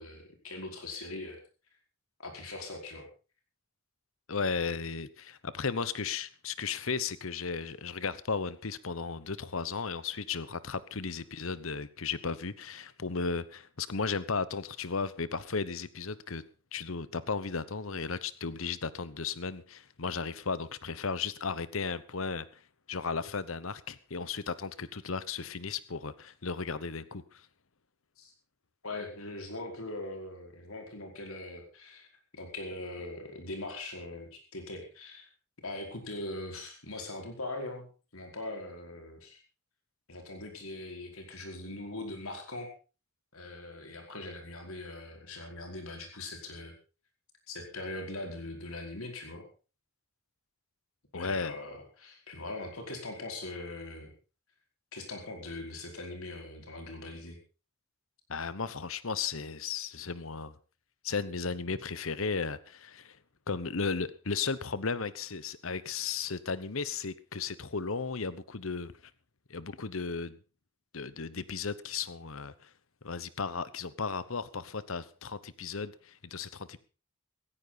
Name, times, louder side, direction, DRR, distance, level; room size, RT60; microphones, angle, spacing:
voice 1, 0.0-1.4 2.2-3.1 28.2-28.3 28.8-32.1 32.3-35.3 35.6-37.9 38.1-39.4 40.1-42.7 43.3-46.7 47.5-49.5 51.1-54.1 54.9-57.4, left 2 dB, 85° left, 4.9 m, -41 dB
voice 2, 4.3-16.4 16.7-22.5 22.9-27.5 51.1-51.5 58.3-60.6 61.0-63.2 63.5-68.9 69.5-70.4 70.9-72.7 73.0-76.8, left 5 dB, 70° left, 1.0 m, -35 dB
16.5 x 15.5 x 4.1 m
head